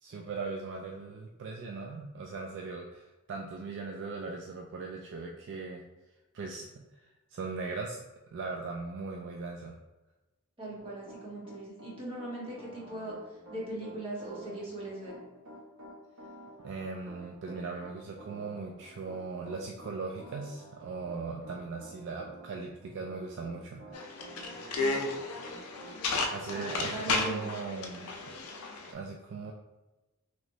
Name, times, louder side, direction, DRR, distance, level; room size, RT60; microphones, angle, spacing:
voice 1, 0.0-5.8 6.3-6.7 7.0-9.8 16.6-24.3 26.3-28.1 28.9-29.5, right 4 dB, 55° right, 1 dB, 0.3 m, -39 dB
voice 2, 10.6-13.1 13.5-15.2 24.8-24.9 26.5-27.5, right 1 dB, 25° right, -7 dB, 1.1 m, -39 dB
Piano, 10.8-26.0 26.4-26.8, right 2 dB, 75° right, 0.8 m, -50 dB
sound 1, 23.9-28.9, left 3 dB, 75° left, 0.4 m, -33 dB
3.0 x 3.0 x 2.7 m, 1.0 s
head